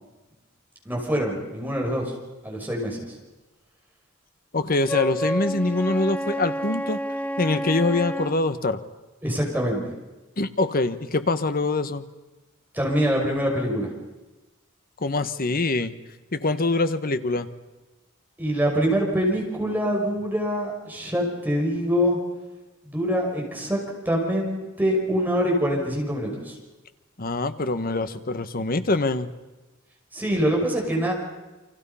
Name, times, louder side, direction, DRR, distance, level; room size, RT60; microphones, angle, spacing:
voice 1, 0.8-2.1 2.4-3.0 9.2-9.9 12.7-13.9 18.4-22.2 22.8-23.8 24.1-26.6 30.1-31.1, equal, 10° right, -1 dB, 5.9 m, -24 dB
voice 2, 4.5-7.0 7.4-8.8 10.4-12.0 15.0-15.9 16.3-17.5 27.2-29.3, left 2 dB, 45° left, 11 dB, 1.2 m, -24 dB
Wind instrument woodwind instrument, 4.8-8.4, equal, 5° left, 0.8 m, -29 dB
29.5 x 25.0 x 5.7 m, 1.1 s
head